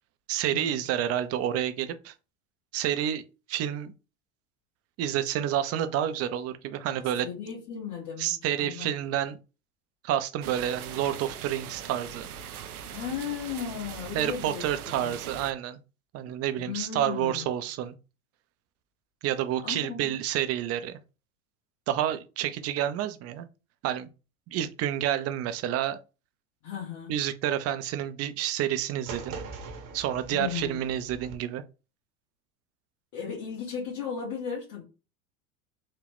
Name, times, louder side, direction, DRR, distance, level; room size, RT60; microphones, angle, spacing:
voice 1, 0.3-2.1 2.7-3.2 3.5-3.9 5.0-7.3 8.2-9.4 10.0-12.3 14.1-15.8 16.1-17.9 19.2-21.0 21.9-23.5 23.8-24.1 24.5-26.0 27.1-29.4 29.9-31.6, right 11 dB, 35° right, 0.5 m, -29 dB
voice 2, 7.2-8.9 12.9-14.6 14.9-15.4 16.6-17.5 19.6-20.2 26.6-27.1 30.3-30.8 33.1-34.8, left 7 dB, 60° left, 1.8 m, -36 dB
sound 1, 10.4-15.5, right 8 dB, 90° right, 0.5 m, -41 dB
sound 2, 29.1-31.3, right 4 dB, 55° right, 1.0 m, -41 dB
3.8 x 2.2 x 3.4 m
hypercardioid pair, 85°, 43 cm